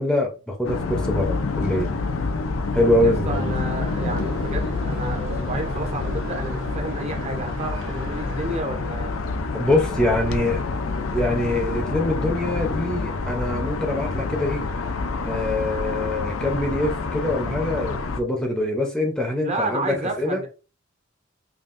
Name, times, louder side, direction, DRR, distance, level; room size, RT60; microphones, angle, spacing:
voice 1, 0.0-1.9 2.7-3.5 9.5-10.6 11.1-14.6 15.2-20.4, left 1 dB, 5° left, 0.7 m, -24 dB
sound 1, 0.6-18.2, left 3 dB, 85° left, 0.6 m, -27 dB
voice 2, 3.0-9.1 19.4-20.5, right 2 dB, 35° right, 0.9 m, -31 dB
sound 2, 3.3-8.6, right 1 dB, 65° right, 1.0 m, -37 dB
5.4 x 2.5 x 2.5 m
head